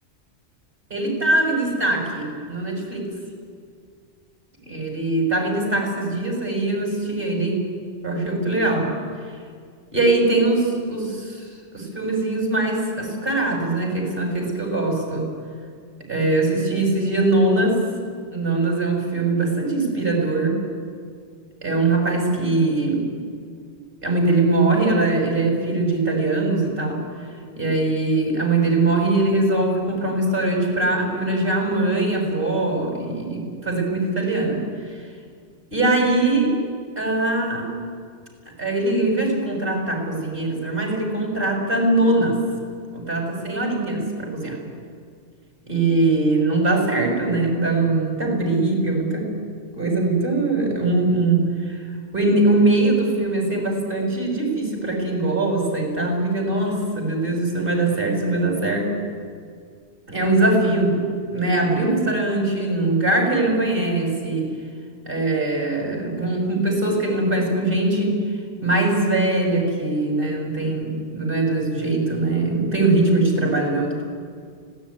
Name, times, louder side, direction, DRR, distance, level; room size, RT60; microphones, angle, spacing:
voice 1, 0.9-3.1 4.6-7.6 8.0-8.9 9.9-11.5 11.7-15.3 16.1-17.8 18.3-20.6 21.6-23.0 24.0-27.0 27.5-34.6 35.7-36.6 37.0-37.7 38.6-42.4 42.9-44.6 45.7-49.3 49.7-51.8 52.1-58.9 60.1-61.0 61.3-64.5 65.0-68.2 68.6-74.0, right 2 dB, 50° right, 1 dB, 6.4 m, -21 dB
25.0 x 17.5 x 9.6 m, 2.1 s
omnidirectional pair, 1.2 m